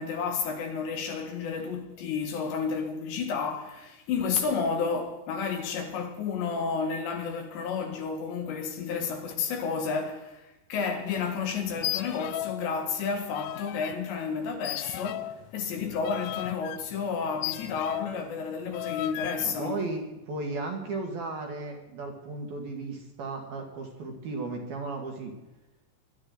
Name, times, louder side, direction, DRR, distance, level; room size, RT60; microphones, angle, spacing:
voice 1, 0.0-10.4 10.7-19.8, left 5 dB, 65° left, 3.4 m, -31 dB
sound 1, 11.7-12.6 12.9-14.0 14.6-18.2 18.7-19.5, left 15 dB, 85° left, 3.2 m, -35 dB
voice 2, 19.4-25.3, right 3 dB, 60° right, 3.1 m, -35 dB
21.5 x 12.0 x 3.9 m
omnidirectional pair, 5.8 m